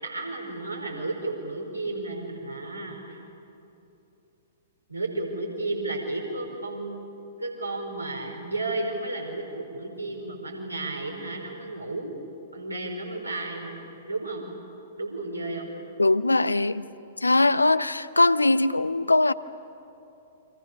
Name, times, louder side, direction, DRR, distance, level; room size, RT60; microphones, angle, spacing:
voice 1, 0.0-3.2 4.9-7.1 7.4-12.2 12.5-13.8 14.1-14.4 15.0-15.7, right 2 dB, 80° right, 1 dB, 4.8 m, -33 dB
voice 2, 16.0-16.9 17.2-19.3, left 2 dB, 80° left, 16 dB, 0.7 m, -21 dB
29.0 x 25.0 x 6.8 m, 2.9 s
figure-of-eight pair, 110°, 0 cm